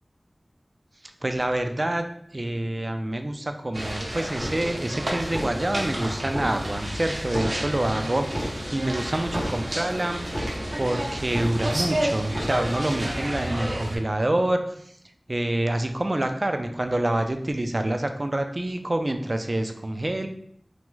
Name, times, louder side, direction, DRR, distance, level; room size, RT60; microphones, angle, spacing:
voice 1, 1.2-2.0 2.3-14.9 15.3-20.3, right 1 dB, 45° right, 6 dB, 0.3 m, -27 dB
sound 1, 3.7-14.0, right 1 dB, 90° right, 0.6 m, -31 dB
sound 2, 4.4-4.9 5.2-5.9 6.2-6.9 7.2-7.9 8.2-8.9 9.2-9.9 10.2-10.9 11.2-11.9 12.2-12.9, equal, 50° left, 1.3 m, -33 dB
3.4 x 2.0 x 3.1 m, 0.67 s
wide cardioid pair, 55°, 0 cm